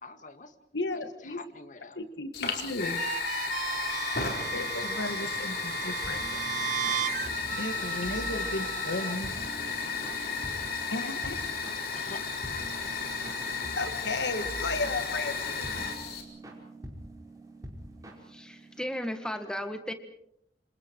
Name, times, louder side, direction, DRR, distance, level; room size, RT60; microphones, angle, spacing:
voice 1, 0.0-0.5 1.3-2.0 3.7-4.5 4.8-4.9 7.7-8.2 8.5-9.2 9.7-10.3 11.9-12.2, left 3 dB, 45° left, 9 dB, 2.1 m, -47 dB
voice 2, 0.7-1.4 2.0-3.0 4.5-6.2 7.6-9.3 10.9-11.4 13.8-15.9, left 2 dB, 90° left, 9 dB, 2.0 m, -34 dB
Fire, 2.3-16.2, left 5 dB, 65° left, 4.4 m, -34 dB
sound 1, 2.8-9.1, right 9 dB, 45° right, 0.9 m, -36 dB
sound 2, 6.0-18.8, right 1 dB, 20° right, 5.2 m, -45 dB
voice 3, 18.3-19.9, equal, 5° left, 7 dB, 1.9 m, -35 dB
28.0 x 27.0 x 4.7 m, 0.73 s
head